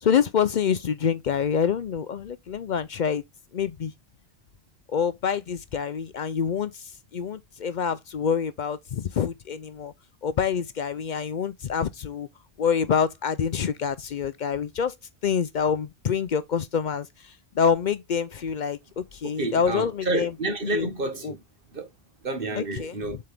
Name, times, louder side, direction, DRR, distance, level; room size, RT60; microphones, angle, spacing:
voice 1, 0.0-3.2 3.5-3.9 4.9-9.9 10.2-12.3 12.6-14.9 15.2-17.1 17.6-20.3 20.7-20.9 21.2-21.3 22.6-23.2, left 7 dB, 55° left, 0.6 m, -26 dB
voice 2, 19.2-21.4 21.7-21.9 22.2-23.2, right 2 dB, 55° right, 1.7 m, -29 dB
7.7 x 4.3 x 3.4 m
omnidirectional pair, 1.1 m